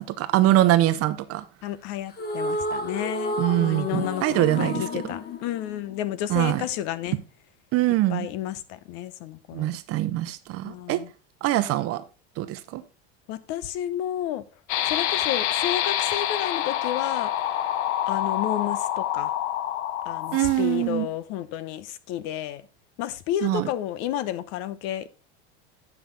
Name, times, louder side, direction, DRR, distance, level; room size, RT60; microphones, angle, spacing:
voice 1, 0.0-1.4 3.4-5.0 6.3-6.6 7.7-8.3 9.5-11.0 11.4-12.0 12.4-12.8 20.3-21.1 23.4-23.7, right 14 dB, 45° right, 0.8 m, -23 dB
voice 2, 1.6-7.2 8.1-9.7 10.6-11.1 13.3-14.4 14.8-17.3 18.1-19.3 20.0-22.6 23.0-25.1, left 11 dB, 60° left, 0.9 m, -31 dB
sound 1, 2.1-6.5, left 1 dB, 30° left, 1.3 m, -31 dB
sound 2, 14.7-20.8, left 11 dB, 90° left, 0.8 m, -27 dB
9.3 x 5.9 x 3.9 m
supercardioid pair, 125°, 33 cm